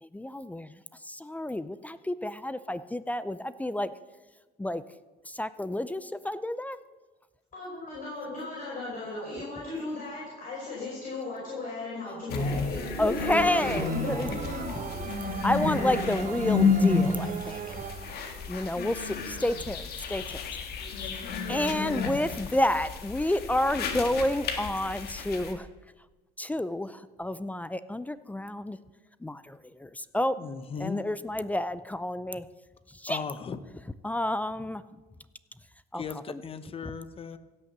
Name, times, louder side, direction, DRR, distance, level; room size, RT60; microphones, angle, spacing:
voice 1, 0.0-3.9 4.6-4.8 5.3-6.8 13.0-14.4 15.4-17.9 18.5-20.4 21.0-21.2 21.5-25.7 26.4-28.8 29.2-30.4 30.8-32.5 32.9-33.2 34.0-34.8 35.9-36.4 36.8-36.9, left 1 dB, 10° left, 0.4 m, -30 dB
voice 2, 7.5-15.1, left 2 dB, 50° left, 5.3 m, -36 dB
sound 1, 12.3-25.5, left 5 dB, 70° left, 1.8 m, -31 dB
sound 2, 13.3-18.5, right 9 dB, 55° right, 0.8 m, -38 dB
voice 3, 30.4-31.0 33.1-33.6 35.9-37.4, left 5 dB, 35° left, 0.9 m, -37 dB
16.5 x 6.5 x 7.3 m
cardioid pair, 110°, 17 cm